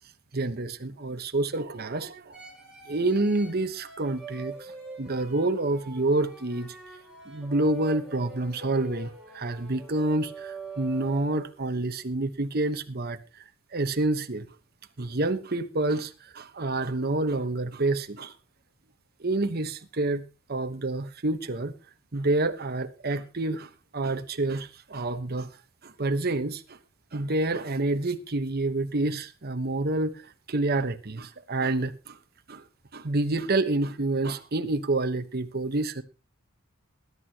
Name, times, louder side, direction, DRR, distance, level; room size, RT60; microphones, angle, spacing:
voice 1, 0.3-2.4 2.9-4.7 5.0-6.7 7.3-13.2 13.7-14.5 15.0-18.3 19.2-20.2 20.5-21.7 22.1-25.5 25.8-26.8 27.1-30.2 30.5-32.2 32.5-32.6 32.9-36.0, right 2 dB, 50° right, 1.1 m, -28 dB
sound 1, 2.3-11.7, right 3 dB, 5° right, 6.2 m, -44 dB
20.5 x 11.0 x 2.9 m
head